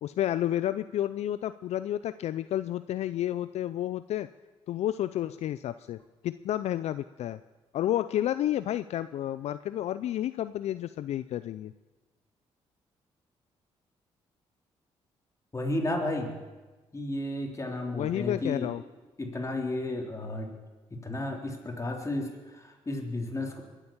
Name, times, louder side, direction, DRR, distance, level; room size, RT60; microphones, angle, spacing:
voice 1, 0.0-4.3 4.7-6.0 6.2-7.4 7.7-11.7 17.9-18.8, left 12 dB, 70° left, 14 dB, 0.4 m, -31 dB
voice 2, 15.5-16.4 16.9-18.7 19.2-20.6 20.9-23.6, left 1 dB, 25° left, 2 dB, 3.5 m, -33 dB
22.5 x 8.2 x 7.2 m, 1.3 s
supercardioid pair, 65°, 12 cm